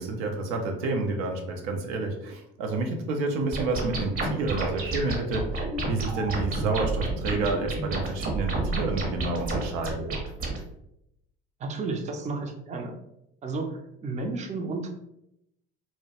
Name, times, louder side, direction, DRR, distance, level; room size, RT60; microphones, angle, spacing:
voice 1, 0.0-5.6 5.9-10.1, right 2 dB, 75° right, 3 dB, 0.5 m, -29 dB
sound 1, 3.5-10.6, right 3 dB, 50° right, 0.8 m, -30 dB
voice 2, 11.6-12.9 13.4-14.9, right 3 dB, 25° right, 3 dB, 0.4 m, -32 dB
2.2 x 2.1 x 2.8 m, 0.80 s
hypercardioid pair, 65°, 29 cm